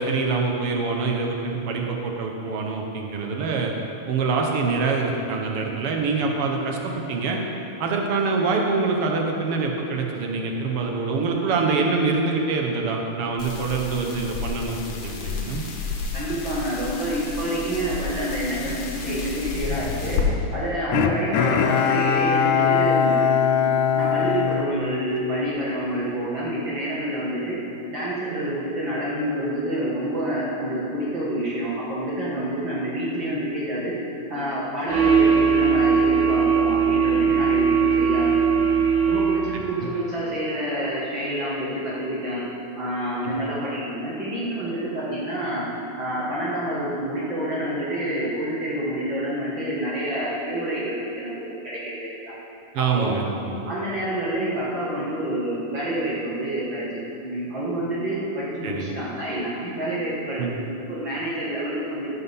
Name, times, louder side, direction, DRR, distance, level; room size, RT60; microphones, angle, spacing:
voice 1, 0.0-3.7 4.1-7.4 7.8-14.8 15.0-15.6 20.9-21.1 39.5-39.9 43.2-43.4 52.7-53.6 58.6-58.9 60.4-60.6, right 4 dB, 60° right, 1 dB, 1.7 m, -25 dB
sound 1, 13.4-20.2, left 5 dB, 60° left, 2.2 m, -31 dB
voice 2, 16.1-20.2 20.5-23.2 24.0-27.6 27.9-33.9 34.3-38.7 39.1-42.4 42.8-45.7 46.0-52.4 52.8-53.2 53.6-62.1, right 1 dB, 45° right, -7 dB, 2.1 m, -28 dB
Bowed string instrument, 20.9-25.4 25.9-26.0, left 7 dB, 90° left, 2.0 m, -21 dB
sound 2, 34.9-39.7, right 6 dB, 90° right, 2.7 m, -20 dB
16.0 x 6.1 x 5.6 m, 3.0 s
omnidirectional pair, 3.3 m